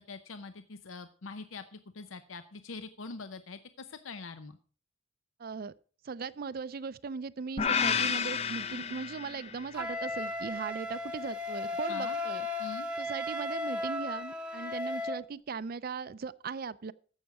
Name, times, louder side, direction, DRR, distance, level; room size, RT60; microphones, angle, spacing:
voice 1, 0.0-4.6 11.9-12.2 12.6-12.9, left 4 dB, 75° left, 0.7 m, -44 dB
voice 2, 5.4-5.7 6.0-12.5 13.0-16.9, right 5 dB, 45° right, 0.4 m, -38 dB
sound 1, 7.6-9.8, left 6 dB, 30° left, 0.5 m, -31 dB
Wind instrument woodwind instrument, 9.7-15.2, left 2 dB, 5° right, 0.9 m, -35 dB
15.0 x 6.5 x 4.7 m
head